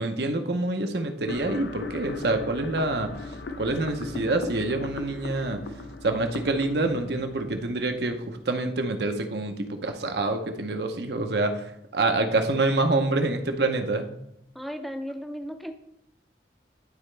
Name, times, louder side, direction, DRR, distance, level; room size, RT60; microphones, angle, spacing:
voice 1, 0.0-3.1 3.6-5.6 6.0-11.7 11.9-14.1, right 2 dB, 70° right, 6 dB, 0.8 m, -26 dB
sound 1, 1.3-8.3, left 3 dB, 90° left, 0.6 m, -38 dB
voice 2, 14.5-15.7, equal, ahead, 6 dB, 0.5 m, -35 dB
11.0 x 4.2 x 3.3 m, 0.77 s
head